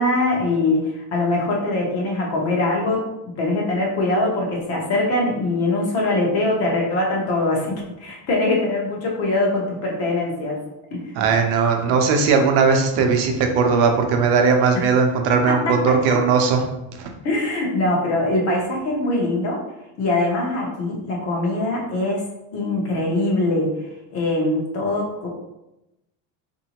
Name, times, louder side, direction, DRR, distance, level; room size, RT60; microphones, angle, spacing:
voice 1, 0.0-3.0 3.4-10.6 10.9-11.0 14.7-14.8 15.5-16.2 17.2-19.6 20.0-22.2 22.5-23.7 24.1-25.3, left 2 dB, 35° left, -1 dB, 0.8 m, -22 dB
voice 2, 11.2-16.7 17.0-17.1, right 5 dB, 65° right, 4 dB, 0.8 m, -18 dB
4.5 x 2.7 x 2.9 m, 0.91 s
cardioid pair, 180°, 42 cm